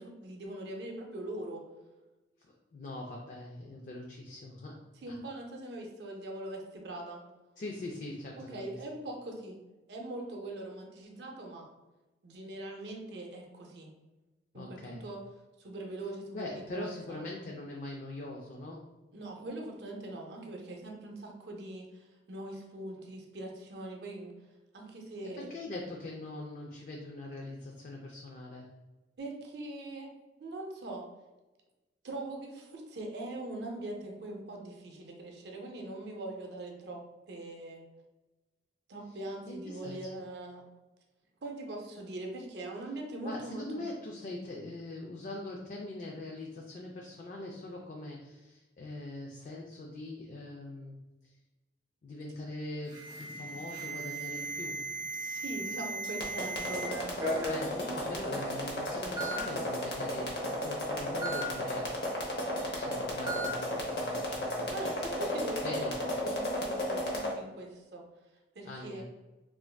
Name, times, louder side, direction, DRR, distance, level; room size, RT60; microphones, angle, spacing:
voice 1, 0.0-1.6 5.0-7.2 8.4-9.6 9.9-11.6 12.2-13.9 14.5-15.2 15.6-16.4 16.7-17.2 19.1-24.3 24.7-25.5 29.2-30.1 30.4-31.1 32.0-37.0 37.3-37.8 38.9-40.7 41.4-43.8 55.1-57.4 64.7-68.0 68.5-69.0, right 2 dB, 65° right, 1 dB, 0.5 m, -41 dB
voice 2, 2.7-4.8 5.1-5.2 7.6-8.8 14.5-15.0 16.3-18.8 25.2-28.7 39.5-40.0 43.2-51.0 51.2-51.3 52.0-54.8 57.5-62.1 62.7-64.6 65.6-65.9 68.6-69.0, left 2 dB, 45° left, -1 dB, 0.3 m, -42 dB
Alarm, 52.9-56.9 57.2-57.6 58.5-58.6 59.2-59.4 61.2-61.4 63.3-63.5, right 2 dB, 20° right, 0.7 m, -36 dB
sound 1, 56.0-67.3, left 1 dB, 60° left, 0.7 m, -34 dB
3.2 x 2.5 x 2.2 m, 1.1 s
head